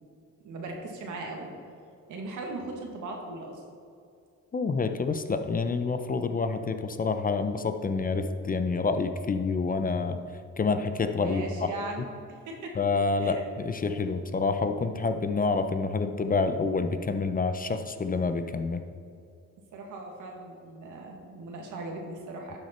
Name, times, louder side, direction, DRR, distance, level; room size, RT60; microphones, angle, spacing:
voice 1, 0.4-1.5 2.1-3.6 11.1-12.8 13.2-13.5 19.7-22.6, right 2 dB, 80° right, 1 dB, 1.9 m, -39 dB
voice 2, 4.5-10.2 10.6-11.4 12.8-18.8, left 4 dB, 30° left, 8 dB, 0.6 m, -28 dB
12.0 x 6.3 x 4.3 m, 2.4 s
cardioid pair, 90°, 30 cm